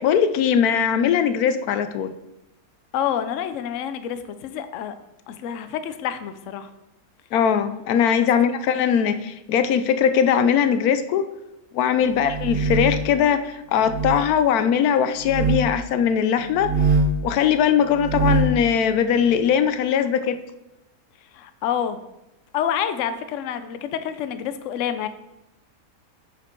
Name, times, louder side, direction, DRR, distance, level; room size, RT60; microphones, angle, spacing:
voice 1, 0.0-2.1 7.3-11.2 11.7-20.4, left 8 dB, 85° left, 11 dB, 1.1 m, -20 dB
voice 2, 2.9-5.0 5.3-6.7 8.2-8.3 12.0-12.1 21.3-22.0 22.5-25.1, left 9 dB, 65° left, 11 dB, 0.9 m, -28 dB
sound 1, 12.1-13.1 13.8-14.2 15.2-15.6 16.5-17.2 17.9-18.6, right 3 dB, 50° right, 1.9 m, -22 dB
9.5 x 5.5 x 4.5 m, 0.91 s
omnidirectional pair, 1.5 m